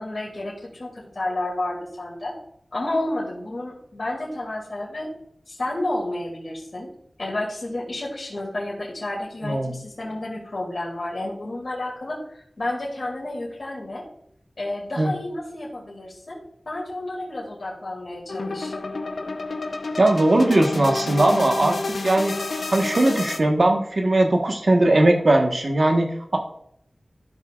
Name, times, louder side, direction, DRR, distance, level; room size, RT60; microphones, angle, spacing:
voice 1, 0.0-2.3 2.7-5.1 5.5-6.9 7.2-14.1 14.6-18.7, left 1 dB, 65° left, -4 dB, 2.4 m, -31 dB
voice 2, 9.4-9.8 15.0-15.1 20.0-22.3 22.7-26.4, right 1 dB, 60° right, 2 dB, 1.3 m, -19 dB
sound 1, 18.3-23.4, left 3 dB, 80° left, 0.6 m, -30 dB
13.5 x 5.6 x 2.4 m, 0.70 s
wide cardioid pair, 45°, 0 cm